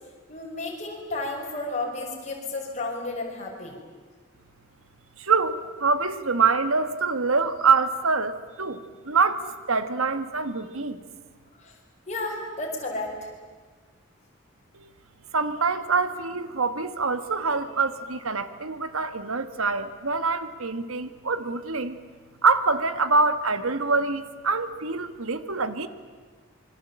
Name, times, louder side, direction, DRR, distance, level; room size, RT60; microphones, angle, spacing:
voice 1, 0.3-3.8 11.6-11.8 12.1-13.3, left 2 dB, 35° left, 0 dB, 6.0 m, -32 dB
voice 2, 5.2-11.0 14.7-14.9 15.3-22.0 22.4-25.9, right 4 dB, 80° right, 12 dB, 1.5 m, -25 dB
26.5 x 23.5 x 8.8 m, 1.4 s
head